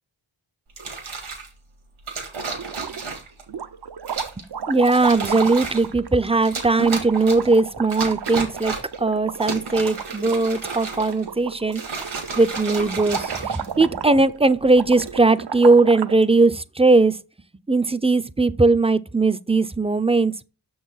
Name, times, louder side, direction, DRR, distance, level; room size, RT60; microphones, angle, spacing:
sound 1, 0.7-1.5 2.1-3.4 4.1-4.4 4.8-5.9 6.4-7.6 7.9-9.0 9.3-11.3 11.7-14.1 14.8-15.2, right 4 dB, 90° right, 3.0 m, -32 dB
sound 2, 2.5-3.2 3.5-16.2, right 7 dB, 55° right, 0.7 m, -33 dB
voice 1, 4.4-11.8 12.4-17.2 17.7-20.4, right 3 dB, 15° right, 0.6 m, -19 dB
6.6 x 6.3 x 4.0 m
cardioid pair, 55°, 47 cm